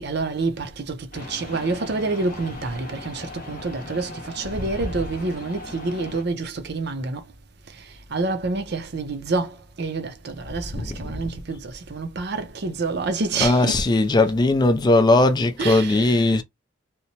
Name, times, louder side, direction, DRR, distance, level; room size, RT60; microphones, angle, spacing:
voice 1, 0.0-7.2 8.1-13.9 15.6-16.4, right 3 dB, 55° right, 0.6 m, -28 dB
sound 1, 1.1-6.2, left 1 dB, 45° left, 0.8 m, -39 dB
voice 2, 10.7-11.1 13.4-16.4, left 2 dB, 20° left, 0.3 m, -19 dB
2.9 x 2.1 x 2.7 m
head